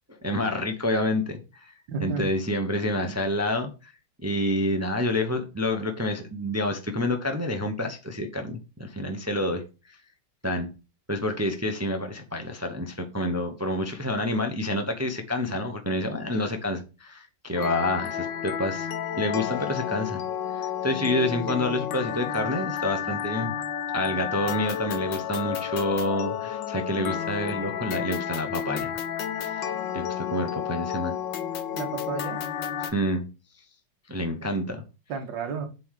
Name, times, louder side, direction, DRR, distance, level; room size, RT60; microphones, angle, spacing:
voice 1, 0.1-1.7 2.0-3.9 4.2-9.6 9.9-10.0 10.4-10.7 11.1-18.9 19.2-20.2 20.5-23.5 23.9-28.9 29.4-31.1 32.8-33.3 34.1-34.8, left 1 dB, 15° right, 5 dB, 0.6 m, -28 dB
voice 2, 1.9-2.3 3.0-3.2 31.7-32.4 35.1-35.7, right 5 dB, 80° right, 5 dB, 2.1 m, -32 dB
sound 1, 17.6-32.9, left 9 dB, 85° left, 1.6 m, -31 dB
8.0 x 3.7 x 6.5 m, 0.31 s
omnidirectional pair, 2.0 m